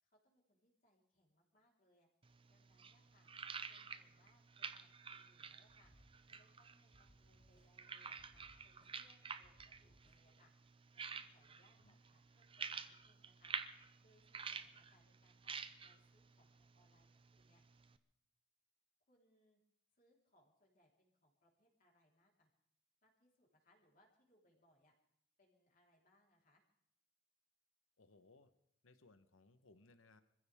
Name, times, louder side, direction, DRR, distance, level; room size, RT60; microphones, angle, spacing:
voice 1, 0.0-2.1 2.5-3.3 3.7-5.9 6.3-10.5 10.9-13.6 14.0-17.1 17.4-17.6 19.1-19.6 19.9-22.5 23.0-24.9 25.4-26.6, left 1 dB, 45° left, -1 dB, 4.1 m, -75 dB
sound 1, 2.2-18.0, right 5 dB, 25° right, 0.7 m, -51 dB
sound 2, 5.7-6.6 6.9-7.9 8.2-9.1 9.4-10.4, equal, 60° left, 3.8 m, -70 dB
voice 2, 28.0-28.5 28.8-30.2, left 3 dB, 90° left, 11 dB, 1.1 m, -66 dB
25.5 x 15.5 x 3.6 m, 0.73 s
head